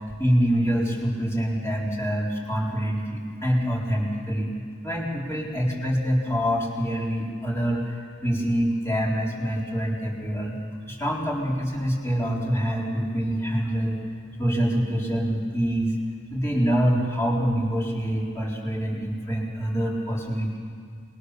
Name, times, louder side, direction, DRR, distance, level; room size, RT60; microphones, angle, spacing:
voice 1, 0.1-4.5 4.8-10.6 10.9-14.0 14.4-15.9 16.3-20.6, equal, 15° left, -3 dB, 4.0 m, -25 dB
27.5 x 21.0 x 6.7 m, 2.2 s
head